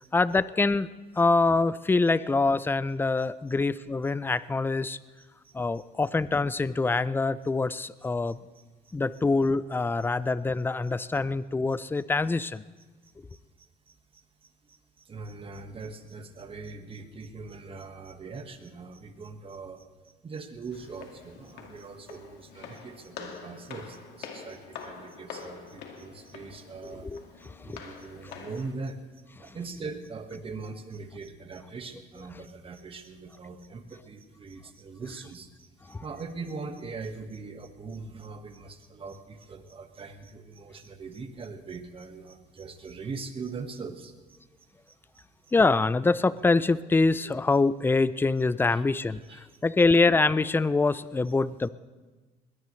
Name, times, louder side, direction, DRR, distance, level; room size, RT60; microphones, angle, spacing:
voice 1, 0.1-0.9 1.2-5.0 5.5-8.4 8.9-12.6 27.0-27.2 27.6-27.8 35.9-36.0 45.5-51.7, left 3 dB, 10° left, 17 dB, 0.4 m, -25 dB
voice 2, 5.2-6.1 7.7-7.8 8.3-8.4 8.8-9.2 11.7-11.8 12.8-19.9 20.2-44.4 44.9-45.2 48.7-48.8 49.1-49.6, right 4 dB, 35° right, 7 dB, 1.6 m, -42 dB
Walk footsteps, 20.7-28.7, left 6 dB, 85° left, 2.1 m, -45 dB
21.5 x 18.0 x 3.3 m, 1.3 s
cardioid pair, 110°, 17 cm